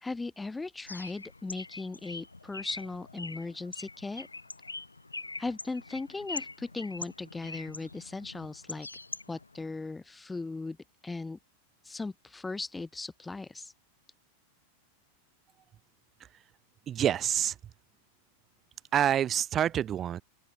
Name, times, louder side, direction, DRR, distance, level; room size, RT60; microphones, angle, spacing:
voice 1, 0.0-4.3 5.4-8.9 9.3-10.8 11.0-11.4 11.8-13.7, left 3 dB, 10° left, 0.6 m, -38 dB
Bird, 0.9-9.6, left 3 dB, 80° left, 0.8 m, -43 dB
voice 2, 16.9-17.6 18.9-20.2, right 10 dB, 25° right, 0.9 m, -27 dB
open air
figure-of-eight pair, 90°, 0 cm